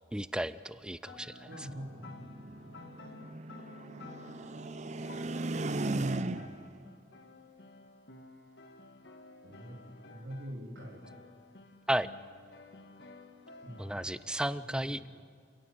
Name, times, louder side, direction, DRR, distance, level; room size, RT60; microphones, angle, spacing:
voice 1, 0.1-1.3 11.9-12.1 13.8-15.1, right 1 dB, 5° right, 15 dB, 0.5 m, -33 dB
sound 1, 1.1-14.4, left 3 dB, 70° left, 1.6 m, -53 dB
sound 2, 1.3-6.7, right 2 dB, 40° right, 0.7 m, -37 dB
voice 2, 1.5-2.8 9.4-11.1 13.6-14.0 14.6-15.1, equal, 90° right, -4 dB, 3.5 m, -45 dB
29.5 x 16.5 x 7.7 m, 2.1 s
head